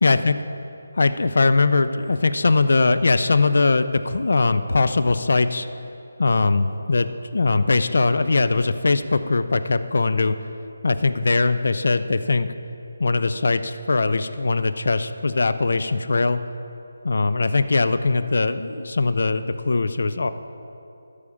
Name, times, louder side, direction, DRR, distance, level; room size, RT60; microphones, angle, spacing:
voice 1, 0.0-0.4 1.0-5.7 6.2-10.3 10.8-12.5 13.0-16.4 17.0-20.3, left 3 dB, 65° left, 10 dB, 0.4 m, -20 dB
13.0 x 4.9 x 7.0 m, 2.8 s
figure-of-eight pair, 155°, 0 cm